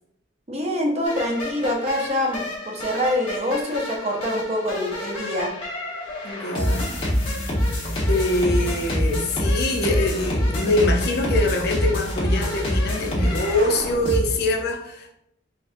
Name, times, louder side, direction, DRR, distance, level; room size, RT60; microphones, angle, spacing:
voice 1, 0.5-5.5, left 1 dB, 30° right, 0 dB, 0.8 m, -25 dB
sound 1, 1.0-14.2, left 1 dB, 25° left, 1.3 m, -26 dB
voice 2, 6.2-6.9 8.1-15.1, left 1 dB, 55° left, 2 dB, 0.7 m, -24 dB
4.2 x 4.1 x 2.6 m, 0.76 s
head